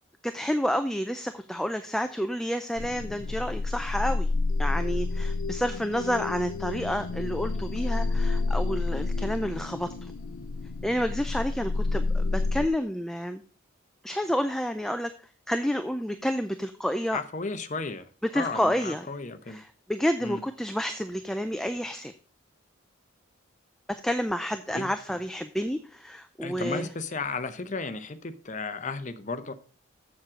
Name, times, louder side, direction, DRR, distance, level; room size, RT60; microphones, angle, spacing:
voice 1, 0.2-4.3 4.6-9.9 10.8-13.4 14.0-15.1 15.5-17.2 18.3-19.0 19.5-22.1 23.9-26.9, equal, ahead, 8 dB, 0.4 m, -29 dB
sound 1, 2.8-12.7, left 3 dB, 80° left, 0.6 m, -29 dB
voice 2, 17.1-18.1 18.3-19.6 20.2-20.4 24.7-25.2 26.4-29.5, left 4 dB, 35° left, 10 dB, 0.7 m, -34 dB
7.4 x 7.2 x 5.0 m, 0.40 s
head